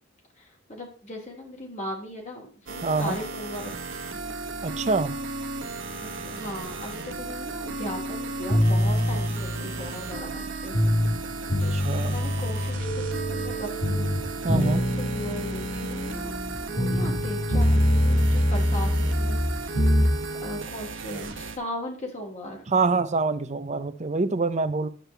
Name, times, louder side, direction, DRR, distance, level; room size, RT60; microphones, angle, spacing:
voice 1, 0.4-4.2 5.9-10.7 11.6-14.1 14.5-16.3 16.6-19.8 20.4-22.6, equal, 40° left, 0 dB, 2.6 m, -38 dB
sound 1, 2.7-21.6, right 3 dB, 70° right, 1.2 m, -35 dB
voice 2, 2.8-3.2 4.6-5.1 11.7-12.1 14.4-14.8 22.7-24.9, right 3 dB, 35° right, 12 dB, 0.7 m, -25 dB
sound 2, 8.5-11.2 11.5-13.6 13.8-17.2 17.5-20.1, equal, 85° left, 2.2 m, -24 dB
sound 3, 12.8-20.7, right 1 dB, 55° left, 3.3 m, -38 dB
9.9 x 7.6 x 3.4 m, 0.43 s
head